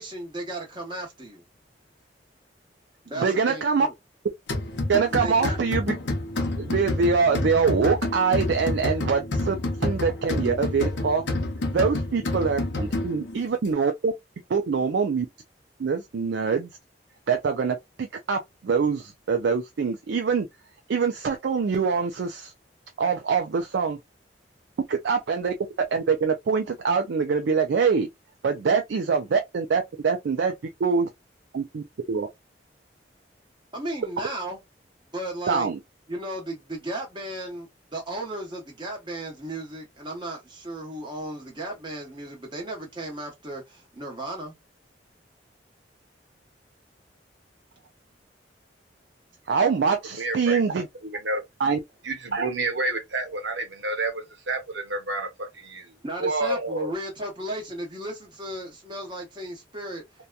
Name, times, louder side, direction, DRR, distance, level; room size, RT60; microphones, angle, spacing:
voice 1, 0.0-1.4 3.0-3.9 5.2-5.6 33.7-34.6 35.1-35.7 36.1-44.5 56.0-60.0, right 1 dB, 25° right, 1.0 m, -35 dB
voice 2, 3.2-3.9 4.9-6.0 6.6-11.2 11.7-14.1 14.5-15.3 15.8-16.7 17.3-20.5 20.9-22.5 23.0-24.0 24.9-25.5 25.9-28.1 28.4-30.5 30.8-31.1 31.5-32.3 35.5-35.8 49.5-50.9 51.6-51.8, right 5 dB, 65° right, 0.4 m, -24 dB
sound 1, 4.5-13.4, left 2 dB, 85° left, 0.7 m, -29 dB
voice 3, 50.1-50.6 51.0-51.4 52.0-56.9, right 2 dB, 85° right, 0.9 m, -29 dB
2.8 x 2.2 x 2.3 m
head